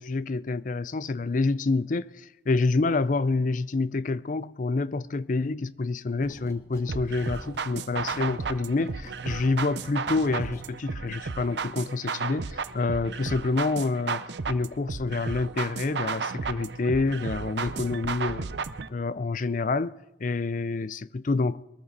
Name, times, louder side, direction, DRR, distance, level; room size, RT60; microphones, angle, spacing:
voice 1, 0.0-18.5 18.9-19.9 20.2-21.6, left 3 dB, 45° left, 0.5 m, -27 dB
sound 1, 6.2-6.9 7.2-10.7, left 1 dB, 15° left, 1.7 m, -49 dB
sound 2, 6.9-18.9, right 5 dB, 80° right, 0.7 m, -33 dB
22.0 x 14.0 x 4.2 m
head